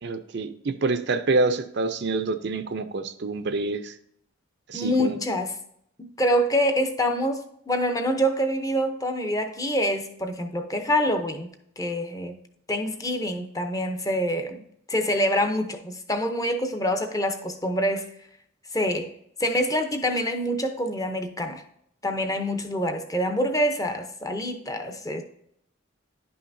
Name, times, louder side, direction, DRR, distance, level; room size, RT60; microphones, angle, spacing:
voice 1, 0.0-3.9 4.7-5.2, right 3 dB, 55° right, 10 dB, 0.5 m, -27 dB
voice 2, 4.7-5.5 6.0-11.5 11.8-12.3 12.7-14.6 14.9-18.1 18.7-19.1 19.4-21.6 22.0-25.2, equal, 15° left, 6 dB, 0.6 m, -26 dB
10.5 x 5.7 x 2.6 m, 0.71 s
head